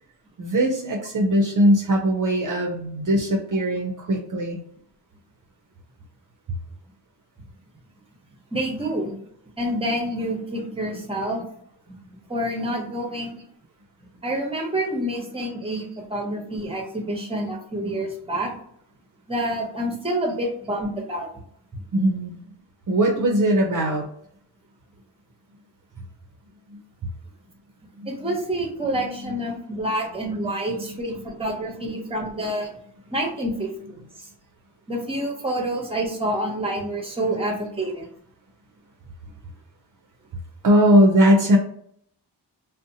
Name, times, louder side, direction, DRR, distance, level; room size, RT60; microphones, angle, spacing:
voice 1, 0.4-4.6 21.9-22.4 22.9-24.1 26.7-26.8 28.0-28.1 28.9-29.6 30.4-30.5 30.8-30.9 40.6-41.6, equal, 50° right, 1 dB, 0.5 m, -20 dB
voice 2, 8.5-9.1 9.6-11.4 11.9-12.0 12.3-13.4 14.2-15.8 16.1-18.5 19.3-21.3 28.0-32.7 33.1-34.3 34.9-38.1, right 1 dB, 15° right, 1 dB, 0.7 m, -28 dB
2.6 x 2.1 x 2.7 m, 0.65 s
wide cardioid pair, 85°, 41 cm